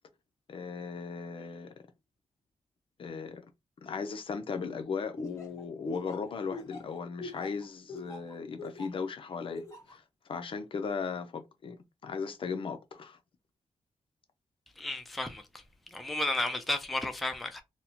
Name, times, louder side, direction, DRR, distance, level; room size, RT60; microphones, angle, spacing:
voice 1, 0.5-1.7 3.0-3.5 3.8-10.0 10.3-13.2, left 5 dB, 50° left, 0.5 m, -37 dB
Laughter, 5.2-9.0 9.5-10.0, left 2 dB, 25° left, 1.2 m, -42 dB
voice 2, 14.8-15.4 15.9-17.6, left 2 dB, ahead, 0.3 m, -32 dB
4.1 x 2.1 x 2.8 m
wide cardioid pair, 170°, 11 cm